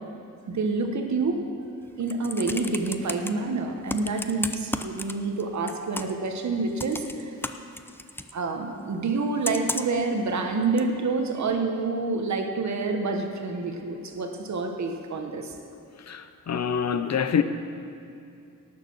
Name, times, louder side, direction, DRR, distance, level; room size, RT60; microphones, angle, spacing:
voice 1, 0.5-1.4 2.0-7.3 8.3-15.5, right 3 dB, 55° right, 4 dB, 1.2 m, -28 dB
Computer keyboard, 1.9-3.3 3.9-5.4 5.7-6.3 6.8-8.3 9.4-10.0 10.8-10.9, left 2 dB, 5° left, 0.4 m, -33 dB
voice 2, 16.1-17.4, left 7 dB, 55° left, 10 dB, 0.6 m, -26 dB
18.0 x 6.8 x 6.2 m, 2.6 s
wide cardioid pair, 155°, 33 cm